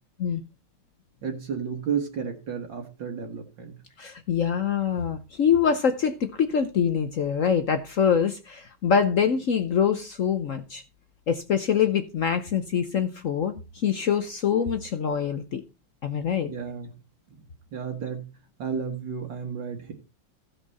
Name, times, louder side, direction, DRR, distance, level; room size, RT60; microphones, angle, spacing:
voice 1, 1.2-3.8 16.5-16.9 17.3-17.4 17.7-18.3 18.6-19.9, right 6 dB, 60° right, 3 dB, 2.0 m, -32 dB
voice 2, 4.0-10.8 11.3-15.6 16.0-16.5, left 7 dB, 75° left, 9 dB, 0.7 m, -24 dB
15.5 x 5.6 x 4.1 m, 0.29 s
omnidirectional pair, 2.4 m